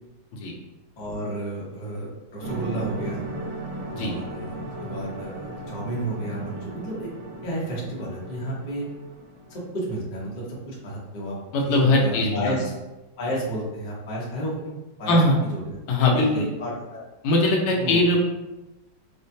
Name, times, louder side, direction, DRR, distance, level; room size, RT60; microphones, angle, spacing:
voice 1, 1.0-3.2 4.0-7.1 7.4-8.9 9.5-11.4 11.7-12.7 13.2-14.7 15.0-15.8 16.1-17.0 17.7-18.0, equal, 55° left, -5 dB, 0.5 m, -31 dB
sound 1, 2.4-9.7, right 2 dB, 45° right, 1.0 m, -36 dB
voice 2, 11.5-12.5 15.1-15.4 15.9-16.4 17.2-18.3, left 2 dB, 85° left, -1 dB, 1.6 m, -21 dB
4.9 x 2.2 x 2.7 m, 1.0 s
omnidirectional pair, 2.3 m